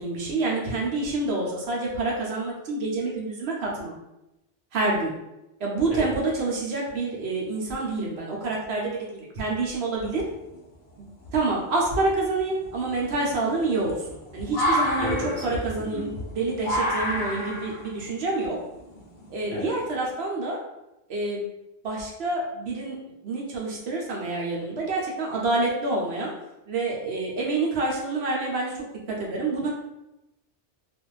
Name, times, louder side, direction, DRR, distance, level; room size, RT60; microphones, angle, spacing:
voice 1, 0.0-3.9 4.7-5.1 5.6-10.2 11.0-14.1 14.3-18.6 19.3-20.6 21.1-21.4 21.8-23.0 23.2-26.3 26.7-28.7 29.1-29.7, right 2 dB, 65° right, -2 dB, 0.8 m, -27 dB
sound 1, 10.0-10.6 11.2-11.3 11.8-19.9, equal, 55° left, 0.6 m, -30 dB
voice 2, 15.0-15.6 15.9-16.1 19.5-19.7, left 1 dB, 15° left, -8 dB, 0.7 m, -31 dB
2.5 x 2.4 x 3.1 m, 0.91 s
omnidirectional pair, 1.2 m